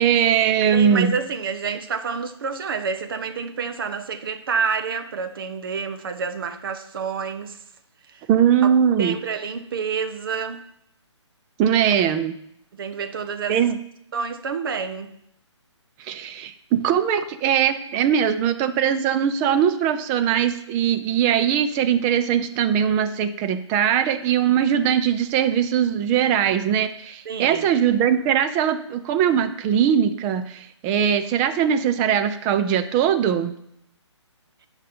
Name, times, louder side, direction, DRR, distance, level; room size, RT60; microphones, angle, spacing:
voice 1, 0.0-1.1 8.3-9.2 11.6-12.4 13.5-13.8 16.0-33.5, right 8 dB, 15° right, 0.4 m, -21 dB
voice 2, 0.7-7.6 8.1-8.2 8.6-8.7 9.0-10.6 12.7-13.6 14.1-15.1 27.2-27.7, right 6 dB, 50° right, 1.0 m, -28 dB
10.5 x 5.2 x 5.4 m
figure-of-eight pair, 145°, 16 cm